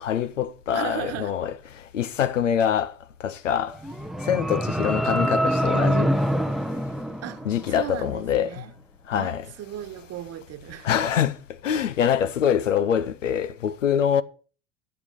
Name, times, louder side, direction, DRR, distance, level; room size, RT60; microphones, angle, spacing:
voice 1, 0.0-2.9 3.2-3.8 4.2-6.1 7.4-8.6 9.1-9.4 10.8-11.4 11.6-14.2, left 9 dB, 80° left, 0.8 m, -24 dB
voice 2, 0.7-1.4 7.2-8.7 9.1-10.9, right 12 dB, 40° right, 1.3 m, -36 dB
sound 1, 3.7-7.9, equal, ahead, 0.6 m, -25 dB
12.0 x 7.9 x 6.7 m
figure-of-eight pair, 70°, 37 cm